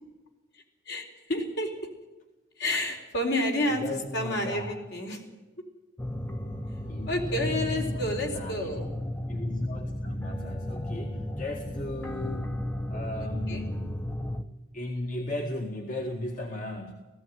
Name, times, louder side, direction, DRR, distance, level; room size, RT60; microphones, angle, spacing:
voice 1, 0.9-1.7 2.6-5.2 7.1-8.9 13.5-13.7, left 1 dB, 60° left, 2 dB, 4.2 m, -30 dB
voice 2, 3.7-4.8 6.9-8.7 9.3-12.6 12.9-13.9 14.7-16.9, left 1 dB, 45° left, 1 dB, 2.0 m, -36 dB
sound 1, 6.0-14.4, left 1 dB, 10° left, 0.9 m, -34 dB
18.0 x 15.5 x 9.5 m, 1.1 s
head